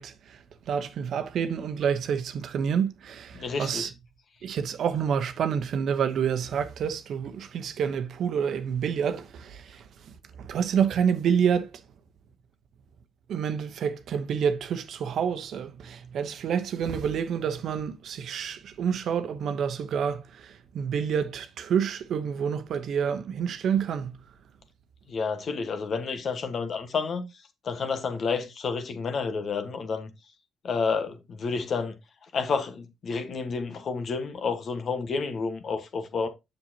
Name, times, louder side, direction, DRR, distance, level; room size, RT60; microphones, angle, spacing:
voice 1, 0.0-3.9 4.4-11.7 13.3-24.2, right 7 dB, 65° right, 0.9 m, -28 dB
voice 2, 3.3-3.9 25.1-27.3 27.6-30.1 30.6-31.9 32.3-36.3, left 5 dB, 55° left, 1.4 m, -30 dB
7.3 x 6.5 x 2.8 m
cardioid pair, 90°, 0 cm